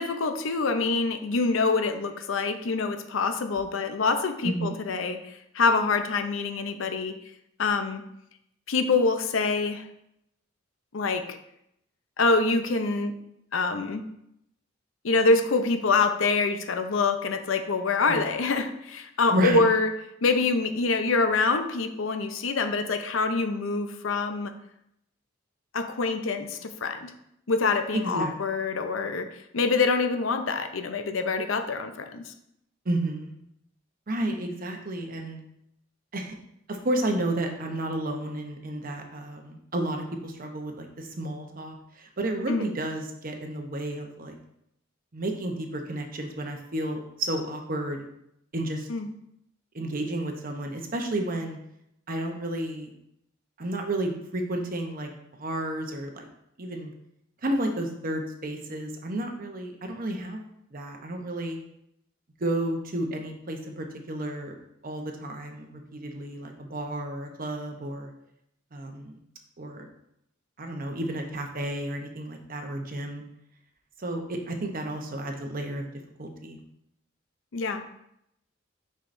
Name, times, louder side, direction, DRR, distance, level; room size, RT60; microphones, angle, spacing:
voice 1, 0.0-7.2 7.6-8.0 8.7-9.8 10.9-11.4 12.2-13.1 13.5-14.0 15.0-19.9 20.2-24.5 25.7-27.1 27.5-29.3 29.5-32.2 42.5-42.7 48.9-49.1 77.5-77.8, left 4 dB, 80° left, 8 dB, 0.6 m, -25 dB
voice 2, 4.4-4.7 18.1-18.3 19.3-19.6 27.9-28.3 32.8-33.4 34.1-35.4 36.1-36.3 36.7-44.4 45.1-48.0 48.5-48.9 49.7-51.6 52.1-52.9 53.6-55.1 55.4-56.3 56.6-56.9 57.4-60.4 60.7-61.6 62.4-64.6 64.8-68.1 68.7-69.1 69.6-69.8 70.6-73.2 74.0-75.9 76.2-76.6, right 1 dB, 45° right, 3 dB, 0.9 m, -31 dB
7.3 x 5.6 x 2.6 m, 0.77 s
head